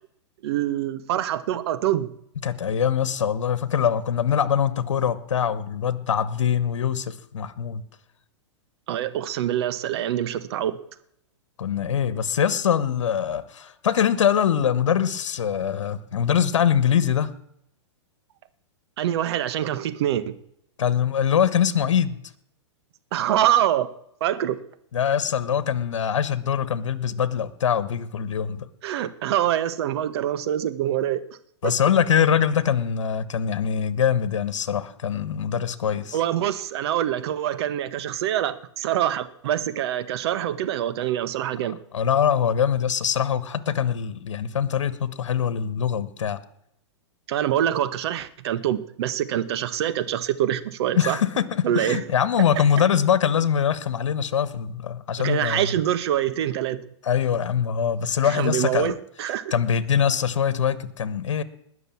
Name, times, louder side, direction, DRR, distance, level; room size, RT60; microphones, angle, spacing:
voice 1, 0.4-2.1 8.9-10.8 19.0-20.4 23.1-23.9 24.2-24.6 28.8-31.2 31.6-31.7 36.1-41.8 47.3-51.2 51.6-52.0 55.2-56.8 58.2-59.5, right 11 dB, 60° right, 12 dB, 1.5 m, -25 dB
voice 2, 2.4-7.8 11.6-17.3 20.8-22.2 24.9-28.6 31.6-36.2 41.9-46.4 50.9-55.7 57.0-58.9 59.5-61.4, left 8 dB, 80° left, 16 dB, 1.4 m, -23 dB
20.0 x 6.8 x 8.6 m, 0.74 s
hypercardioid pair, 125°, 15 cm